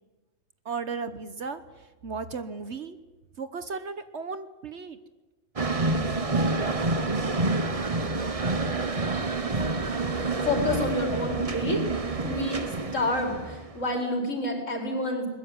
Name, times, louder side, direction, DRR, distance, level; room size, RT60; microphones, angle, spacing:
voice 1, 0.6-1.6 2.0-3.0 3.4-5.0, right 5 dB, 60° right, 11 dB, 1.4 m, -35 dB
sound 1, 5.6-13.9, right 3 dB, 30° right, 1.2 m, -28 dB
voice 2, 10.1-11.9 12.2-15.3, left 1 dB, 70° left, 3 dB, 5.3 m, -29 dB
21.5 x 21.0 x 9.7 m, 1.2 s
omnidirectional pair, 1.3 m